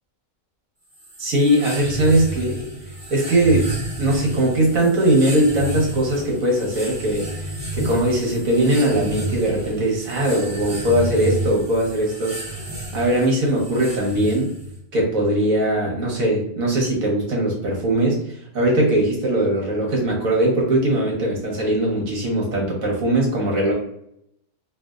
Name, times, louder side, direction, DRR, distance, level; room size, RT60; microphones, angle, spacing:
Spasmodic Rhythm Machine, 0.9-14.8, right 1 dB, 30° right, 0.8 m, -31 dB
voice 1, 1.2-2.6 3.1-3.7 4.0-7.3 7.7-12.6 12.9-14.5 14.9-18.2 18.5-23.7, right 1 dB, 70° right, -2 dB, 1.4 m, -20 dB
3.3 x 2.5 x 2.3 m, 0.75 s
omnidirectional pair, 1.5 m